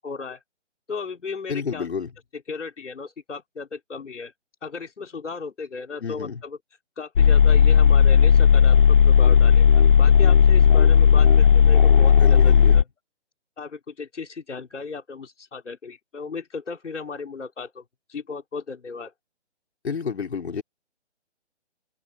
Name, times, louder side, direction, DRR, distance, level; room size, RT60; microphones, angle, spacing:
voice 1, 0.0-0.4 0.9-1.9 2.5-4.3 4.6-6.6 7.0-9.7 10.0-12.8 13.6-17.8 18.1-19.1, left 4 dB, 80° left, 4.2 m, -36 dB
voice 2, 1.5-2.1 6.0-6.4 12.2-12.8 19.8-20.6, left 6 dB, 65° left, 4.3 m, -30 dB
sound 1, 7.2-12.8, left 7 dB, 50° left, 0.6 m, -14 dB
hypercardioid pair, 170°, 35 cm